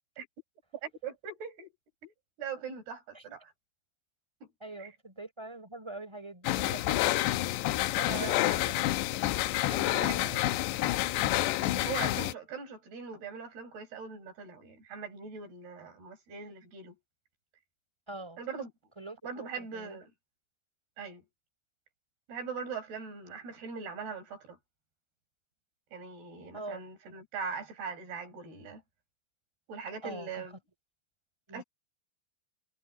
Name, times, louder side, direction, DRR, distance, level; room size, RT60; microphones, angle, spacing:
voice 1, 0.8-1.7 2.0-2.1 2.4-3.5 4.8-4.9 8.1-8.4 9.9-10.3 11.2-16.9 18.4-18.7 19.2-20.1 21.0-21.2 22.3-24.6 25.9-28.8 29.7-30.6 31.5-31.6, right 5 dB, 65° right, 8.1 m, -41 dB
voice 2, 4.6-7.3 7.7-8.9 9.7-10.5 11.7-11.9 18.1-18.4 19.0-20.0 26.5-26.8 30.0-30.5 31.5-31.6, right 2 dB, 5° right, 5.8 m, -44 dB
sound 1, 6.4-12.3, left 16 dB, 85° left, 3.0 m, -28 dB
omnidirectional pair, 4.9 m